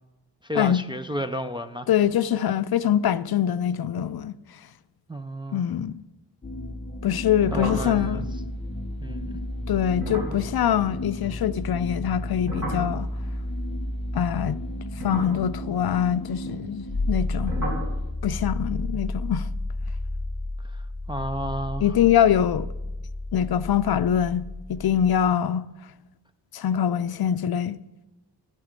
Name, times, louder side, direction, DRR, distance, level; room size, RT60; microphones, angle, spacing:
voice 1, 0.4-1.9 5.1-5.6 7.5-8.2 9.0-9.4 21.1-21.8, equal, 15° right, 0.3 m, -32 dB
voice 2, 1.9-4.4 5.5-6.0 7.0-8.3 9.7-13.1 14.1-14.6 15.0-17.6 18.2-19.5 21.8-22.7 23.3-25.7 26.5-27.8, left 9 dB, 60° left, 0.5 m, -24 dB
sound 1, 6.4-25.3, left 1 dB, 15° left, 0.6 m, -32 dB
sound 2, 7.5-11.8 12.1-14.3 14.9-17.2 17.5-18.0, right 1 dB, 45° right, 4.2 m, -36 dB
13.5 x 9.9 x 5.1 m
wide cardioid pair, 175°, 42 cm